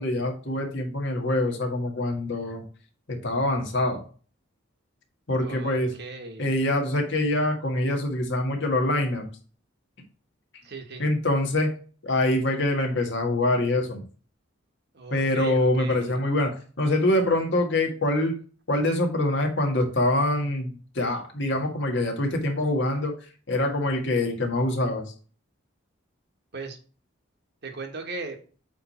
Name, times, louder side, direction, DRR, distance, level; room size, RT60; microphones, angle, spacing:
voice 1, 0.0-2.6 3.1-4.0 5.3-5.9 6.4-9.3 11.0-11.7 12.0-14.0 15.1-18.3 18.7-23.1 23.5-25.1, left 1 dB, 60° left, 2 dB, 1.8 m, -25 dB
voice 2, 5.4-6.5 10.6-11.1 14.9-16.2 26.5-26.8 27.6-28.4, right 3 dB, 55° right, 4 dB, 1.4 m, -38 dB
8.3 x 3.4 x 4.3 m, 0.39 s
head